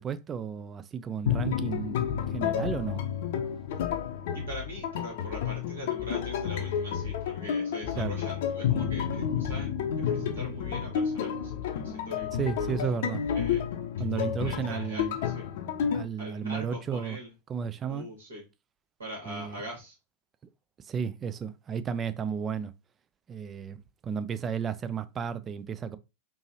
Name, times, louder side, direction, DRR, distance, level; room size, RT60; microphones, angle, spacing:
voice 1, 0.0-2.0 2.3-3.0 8.0-8.2 12.3-13.2 14.0-15.1 15.9-17.2 17.5-18.1 19.3-19.6 20.9-22.7 23.3-23.8 24.0-26.0, right 7 dB, 25° right, 0.3 m, -33 dB
sound 1, 1.3-16.0, left 8 dB, 50° left, 0.6 m, -30 dB
voice 2, 4.3-9.8 10.1-12.7 13.3-13.6 14.0-15.5 16.2-17.3 17.9-18.4 19.0-19.9, equal, 65° right, 2.4 m, -42 dB
4.5 x 2.9 x 2.8 m
figure-of-eight pair, 90°, 0 cm